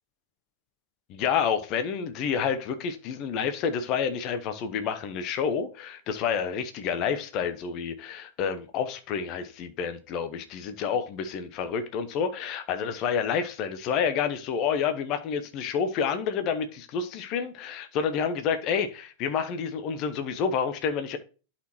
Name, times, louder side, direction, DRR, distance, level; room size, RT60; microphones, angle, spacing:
voice 1, 1.1-21.2, left 7 dB, 40° left, 0.8 m, -29 dB
11.0 x 4.3 x 3.0 m
figure-of-eight pair, 90°, 0 cm